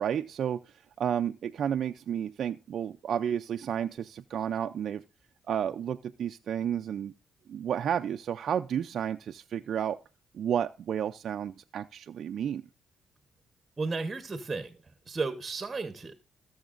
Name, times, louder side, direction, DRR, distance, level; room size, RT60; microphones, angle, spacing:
voice 1, 0.0-5.0 5.5-7.1 7.5-10.0 10.3-12.6, right 9 dB, 60° right, 0.4 m, -31 dB
voice 2, 13.8-14.8 15.1-16.1, right 3 dB, 25° right, 1.0 m, -33 dB
17.0 x 7.1 x 2.5 m
cardioid pair, 90°, 0 cm